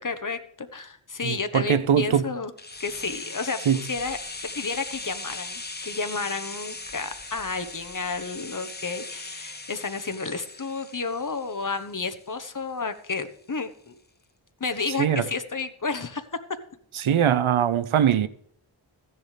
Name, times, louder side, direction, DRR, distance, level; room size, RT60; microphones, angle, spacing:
voice 1, 0.0-2.5 2.8-4.2 4.5-14.0 14.6-16.2, left 4 dB, 40° left, 1.1 m, -31 dB
voice 2, 1.2-2.3 3.7-3.8 15.0-15.3 16.9-18.3, right 9 dB, 90° right, 0.7 m, -21 dB
sound 1, 2.6-12.4 12.7-12.8, left 3 dB, 20° left, 0.9 m, -39 dB
15.5 x 10.5 x 3.3 m
wide cardioid pair, 95°, 47 cm